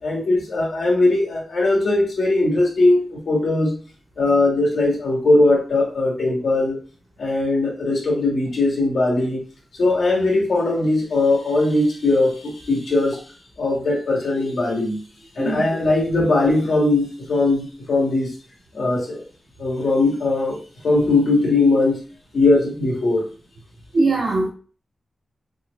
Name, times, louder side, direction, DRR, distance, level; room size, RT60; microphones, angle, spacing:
voice 1, 0.0-3.7 4.2-6.8 7.2-9.4 9.8-13.2 13.6-15.0 15.4-18.3 18.7-19.2 19.6-20.6 20.8-22.0 22.3-23.3, left 2 dB, 90° left, 1.8 m, -19 dB
voice 2, 23.9-24.5, right 3 dB, 65° right, 1.7 m, -20 dB
6.1 x 2.1 x 2.4 m
wide cardioid pair, 130°, 0 cm